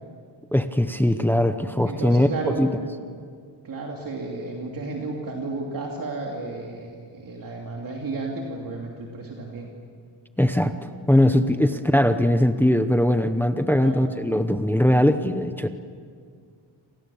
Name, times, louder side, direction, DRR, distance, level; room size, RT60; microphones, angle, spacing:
voice 1, 0.5-2.3 2.6-2.7 10.4-10.7 11.1-15.7, left 1 dB, 5° left, 9 dB, 0.8 m, -20 dB
voice 2, 1.9-2.7 3.6-9.7 10.6-10.8 11.7-11.8 13.8-14.0, right 3 dB, 45° right, -1 dB, 3.0 m, -33 dB
29.5 x 27.0 x 7.2 m, 2.1 s
wide cardioid pair, 170°, 46 cm